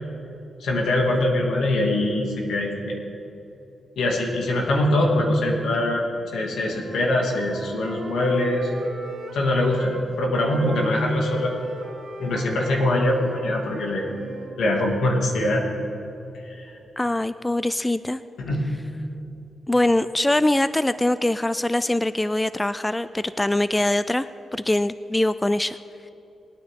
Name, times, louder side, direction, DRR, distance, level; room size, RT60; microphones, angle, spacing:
voice 1, 0.6-3.0 4.0-6.0 6.3-8.7 9.3-11.5 12.2-14.1 14.6-15.6 16.5-16.7 18.4-18.7, left 1 dB, 80° left, -1 dB, 2.3 m, -23 dB
Wind instrument woodwind instrument, 6.5-10.0 10.3-14.6, right 3 dB, 65° right, 2.1 m, -39 dB
voice 2, 17.0-18.2 19.7-24.3 24.5-25.8, left 1 dB, 15° left, 14 dB, 0.3 m, -23 dB
20.5 x 9.5 x 3.7 m, 2.9 s
cardioid pair, 80°, 0 cm